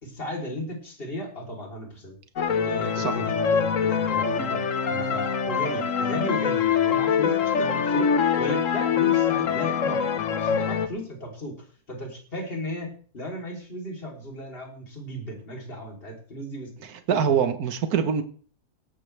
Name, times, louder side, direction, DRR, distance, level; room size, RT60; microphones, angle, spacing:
voice 1, 0.0-2.2 2.6-4.6 4.9-8.1 8.4-10.0 10.3-11.6 11.9-16.7 17.1-17.4, equal, 40° left, 0 dB, 3.6 m, -35 dB
sound 1, 2.4-10.9, left 7 dB, 60° left, 1.4 m, -24 dB
voice 2, 17.1-18.2, right 7 dB, 80° right, 9 dB, 1.7 m, -23 dB
17.5 x 13.0 x 3.4 m, 0.43 s
omnidirectional pair, 1.6 m